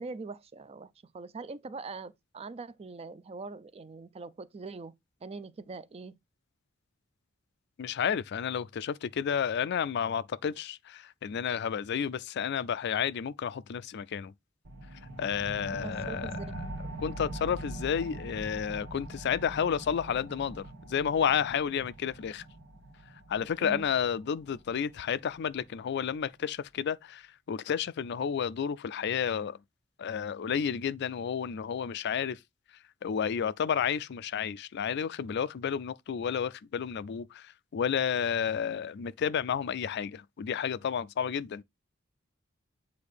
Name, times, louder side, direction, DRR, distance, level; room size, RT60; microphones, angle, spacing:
voice 1, 0.0-4.9 5.2-6.1 15.8-16.4 23.6-23.8, right 3 dB, 30° right, 0.4 m, -42 dB
voice 2, 7.8-14.3 15.2-16.4 17.0-20.6 20.9-22.4 23.3-29.6 30.0-32.4 33.0-41.6, left 7 dB, 55° left, 0.4 m, -31 dB
sound 1, 14.6-25.7, right 1 dB, 90° right, 1.3 m, -43 dB
8.1 x 2.8 x 5.1 m
head